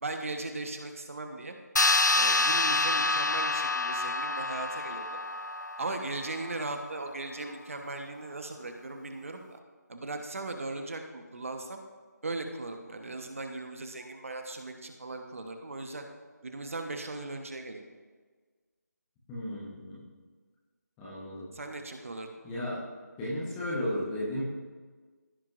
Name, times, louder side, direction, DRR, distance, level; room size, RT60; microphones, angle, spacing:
voice 1, 0.0-1.5 2.2-5.1 5.8-9.6 9.9-11.8 12.2-16.0 16.4-17.8 21.5-22.3, right 2 dB, 50° right, 5 dB, 1.1 m, -38 dB
sound 1, 1.8-6.6, left 3 dB, 75° left, 0.7 m, -27 dB
voice 2, 19.3-20.0 21.0-21.5 22.4-22.8 23.2-24.4, left 1 dB, 5° left, -8 dB, 1.0 m, -34 dB
15.0 x 5.8 x 2.5 m, 1.4 s
figure-of-eight pair, 165°, 10 cm